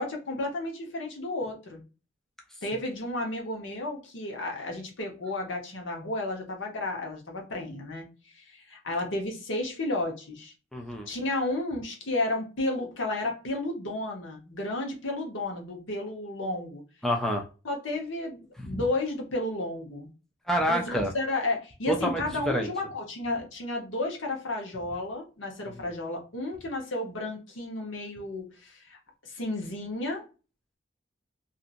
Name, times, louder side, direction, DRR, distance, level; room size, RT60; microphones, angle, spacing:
voice 1, 0.0-1.8 2.6-10.5 11.1-16.8 17.6-20.1 20.7-30.3, left 2 dB, 75° left, 1 dB, 1.0 m, -32 dB
voice 2, 10.7-11.1 17.0-17.5 18.6-18.8 20.5-21.1 21.9-22.7, equal, ahead, 0 dB, 0.3 m, -27 dB
2.7 x 2.5 x 2.5 m, 0.32 s
head